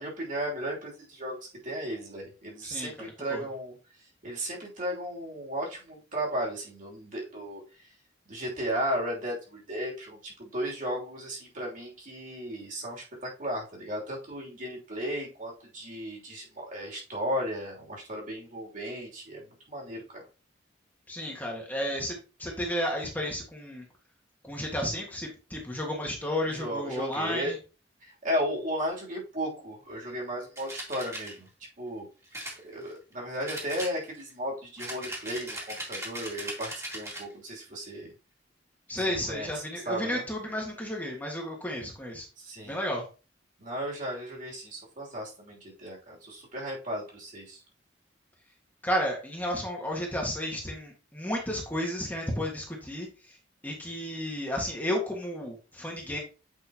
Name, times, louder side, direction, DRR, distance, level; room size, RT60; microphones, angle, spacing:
voice 1, 0.0-3.7 4.2-7.6 8.3-20.2 26.5-27.5 28.0-31.5 31.8-32.1 32.6-38.1 38.9-40.2 42.4-42.8 43.6-47.6, equal, 45° right, -2 dB, 3.0 m, -35 dB
voice 2, 2.6-3.4 21.1-23.8 24.4-27.6 38.9-42.3 42.7-43.0 48.8-53.1 53.6-56.2, equal, 10° left, -1 dB, 1.6 m, -32 dB
sound 1, 30.6-31.3 32.3-33.1 33.5-34.3 34.8-37.3, right 1 dB, 15° right, 2.1 m, -39 dB
8.3 x 5.4 x 2.9 m, 0.33 s
head